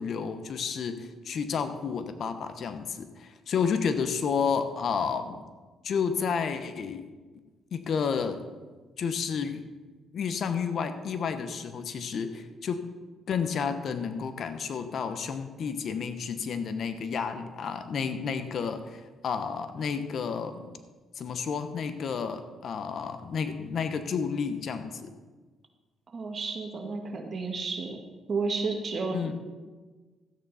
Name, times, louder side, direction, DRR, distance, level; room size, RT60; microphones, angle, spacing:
voice 1, 0.0-5.4 5.8-7.0 7.7-8.5 9.0-9.6 10.1-12.8 13.3-20.8 21.2-25.1 29.1-29.3, left 6 dB, 60° left, 9 dB, 0.9 m, -31 dB
voice 2, 26.1-28.0 28.3-29.3, right 3 dB, 45° right, 3 dB, 1.8 m, -32 dB
13.5 x 9.1 x 4.2 m, 1.3 s
cardioid pair, 90°, 0 cm